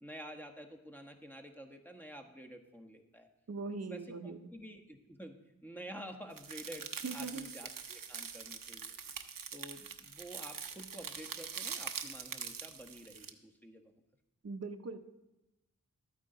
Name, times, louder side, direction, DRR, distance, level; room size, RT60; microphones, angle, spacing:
voice 1, 0.0-3.3 3.9-5.4 5.6-8.9 9.5-13.8, equal, 5° left, 4 dB, 1.2 m, -50 dB
voice 2, 3.5-4.4 7.0-7.5 14.4-15.0, right 3 dB, 50° right, 8 dB, 0.7 m, -40 dB
sound 1, 6.4-13.3, right 6 dB, 80° right, 0.7 m, -44 dB
12.5 x 9.0 x 3.9 m, 0.98 s
cardioid pair, 45°, 33 cm